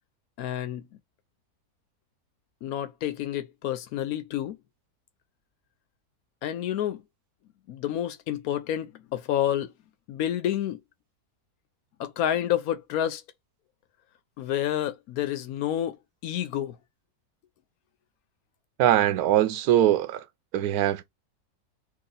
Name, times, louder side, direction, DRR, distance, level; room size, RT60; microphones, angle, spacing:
voice 1, 0.4-0.9 2.6-4.6 6.4-7.0 7.7-9.7 10.1-10.8 12.0-13.2 14.4-16.0 16.2-16.8, left 11 dB, 75° left, 1.0 m, -29 dB
voice 2, 18.8-20.2 20.5-21.1, right 12 dB, 75° right, 1.1 m, -22 dB
3.0 x 2.8 x 3.9 m
omnidirectional pair, 1.6 m